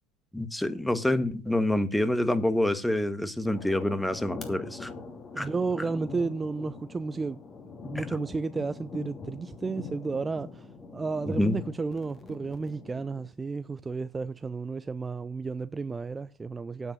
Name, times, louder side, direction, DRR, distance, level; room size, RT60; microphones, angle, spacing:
voice 1, 0.3-4.9 5.4-5.5 7.9-8.0 11.4-11.6, left 1 dB, 5° left, 1.4 m, -27 dB
sound 1, 3.5-13.3, left 4 dB, 25° left, 2.8 m, -43 dB
voice 2, 5.3-7.4 7.8-16.9, right 4 dB, 20° right, 0.4 m, -32 dB
8.9 x 8.0 x 7.4 m
hypercardioid pair, 85°, 0 cm